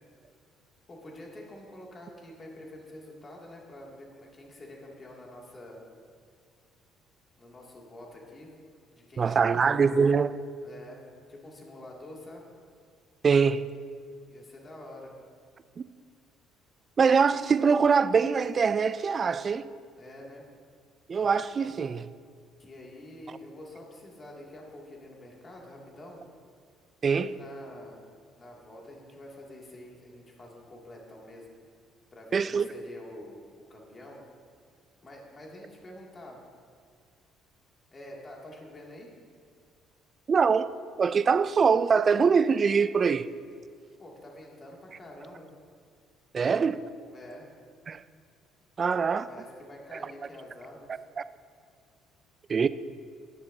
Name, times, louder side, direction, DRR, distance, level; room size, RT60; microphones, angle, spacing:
voice 1, 0.9-5.8 7.4-8.5 8.9-9.8 10.6-11.0 11.3-12.4 14.3-15.1 20.0-20.5 22.6-26.2 27.1-28.0 28.4-31.5 32.1-34.2 35.0-36.4 37.9-39.1 44.0-45.5 47.1-47.5 49.3-51.0, left 1 dB, 35° left, 2.5 m, -47 dB
voice 2, 9.2-10.4 13.2-13.7 17.0-19.7 21.1-22.1 27.0-27.3 32.3-32.7 40.3-40.7 41.0-43.3 46.3-46.8 47.9-48.0 48.8-49.3 49.9-50.0 51.2-51.3 52.5-52.7, right 5 dB, 40° right, 0.4 m, -23 dB
19.5 x 6.8 x 2.8 m
hypercardioid pair, 60°, 0 cm